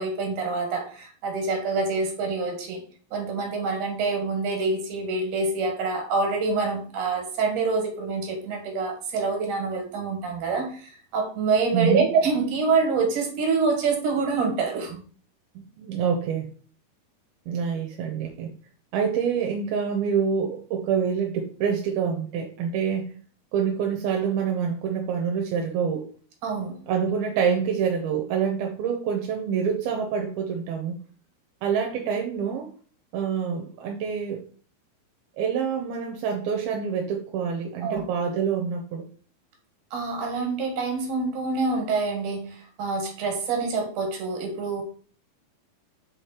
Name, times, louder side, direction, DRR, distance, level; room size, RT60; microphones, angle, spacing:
voice 1, 0.0-2.8 3.1-15.0 26.4-26.8 37.8-38.0 39.9-44.8, right 4 dB, 60° right, 3 dB, 2.9 m, -26 dB
voice 2, 11.7-12.1 15.6-16.5 17.5-18.5 18.9-23.1 23.5-26.1 26.9-31.0 31.6-32.7 33.1-34.4 35.4-39.1, right 7 dB, 80° right, 3 dB, 2.5 m, -26 dB
5.3 x 5.0 x 4.3 m, 0.42 s
omnidirectional pair, 4.5 m